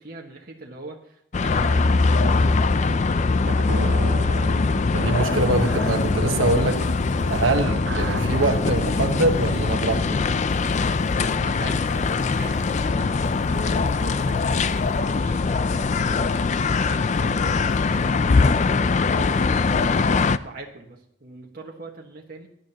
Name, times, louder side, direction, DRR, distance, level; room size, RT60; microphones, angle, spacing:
voice 1, 0.0-3.5 11.1-22.5, right 2 dB, 50° right, -1 dB, 1.5 m, -42 dB
sound 1, 1.3-20.4, left 4 dB, 35° left, 0.4 m, -22 dB
sound 2, 3.5-8.6, right 4 dB, 65° right, 0.6 m, -34 dB
voice 2, 4.9-6.9 7.3-10.3, right 2 dB, 85° right, 4 dB, 1.2 m, -24 dB
sound 3, 5.2-16.4, equal, 20° right, 1.4 m, -43 dB
18.5 x 12.0 x 2.9 m, 0.76 s
head